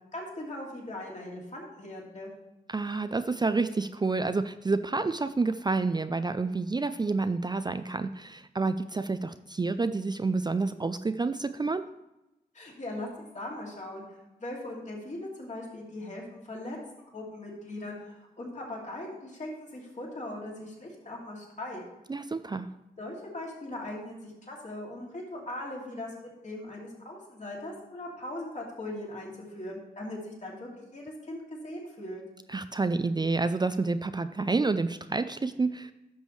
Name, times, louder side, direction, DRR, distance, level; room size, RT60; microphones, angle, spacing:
voice 1, 0.1-2.3 12.5-16.8 17.1-21.8 23.0-32.2, left 1 dB, 45° left, -2 dB, 2.6 m, -40 dB
voice 2, 2.7-11.8 22.1-22.7 32.5-35.9, right 3 dB, 25° right, 11 dB, 0.4 m, -29 dB
11.0 x 6.2 x 3.2 m, 0.94 s
cardioid pair, 45°, 17 cm